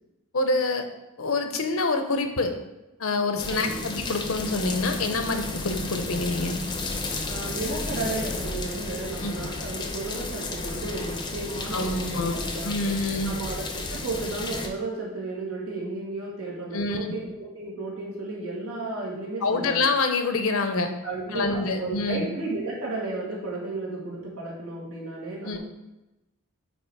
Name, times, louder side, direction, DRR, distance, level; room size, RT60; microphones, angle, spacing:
voice 1, 0.3-0.8 1.2-2.5 3.0-6.6 9.2-9.3 11.7-13.4 16.7-17.0 19.4-20.9 21.3-22.2 25.4-25.6, left 3 dB, 70° left, 6 dB, 0.8 m, -26 dB
sound 1, 3.4-14.7, left 2 dB, 20° left, 0.6 m, -33 dB
voice 2, 3.5-3.9 7.3-12.9 13.2-19.9 21.0-25.6, right 2 dB, 85° right, -4 dB, 2.2 m, -33 dB
8.8 x 3.1 x 4.7 m, 0.97 s
head